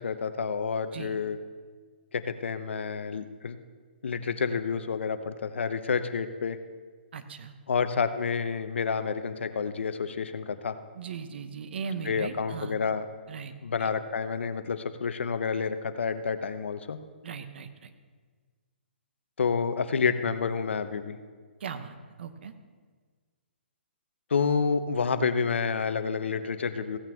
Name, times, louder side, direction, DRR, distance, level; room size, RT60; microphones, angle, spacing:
voice 1, 0.0-1.4 2.1-3.6 4.0-6.6 7.7-10.8 12.0-13.1 13.6-17.0 19.4-21.2 24.3-27.0, left 5 dB, 80° left, 10 dB, 0.9 m, -29 dB
voice 2, 7.1-7.5 10.9-12.7 13.3-13.5 13.8-13.9 17.2-17.9 21.6-22.5, right 6 dB, 65° right, 9 dB, 1.0 m, -38 dB
16.0 x 8.8 x 3.6 m, 1.5 s
hypercardioid pair, 150°, 6 cm